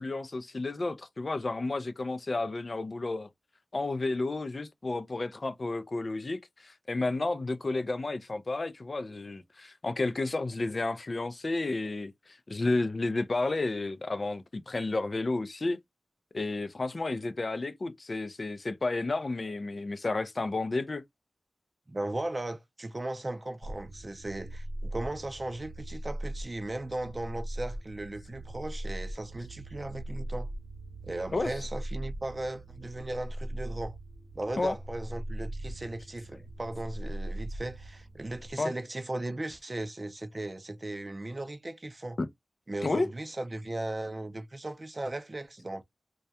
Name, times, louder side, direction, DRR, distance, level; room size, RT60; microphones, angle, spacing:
voice 1, 0.0-3.3 3.7-15.8 16.3-21.0 31.3-31.5 34.6-34.7 38.6-38.7 42.2-42.3 42.8-43.1, left 2 dB, 50° left, 0.4 m, -31 dB
voice 2, 21.9-30.5 31.0-34.0 34.3-42.2 42.7-45.8, right 2 dB, 35° right, 0.4 m, -37 dB
sound 1, 23.6-38.5, right 1 dB, 90° left, 0.9 m, -40 dB
2.2 x 2.1 x 2.6 m
wide cardioid pair, 60°, 0 cm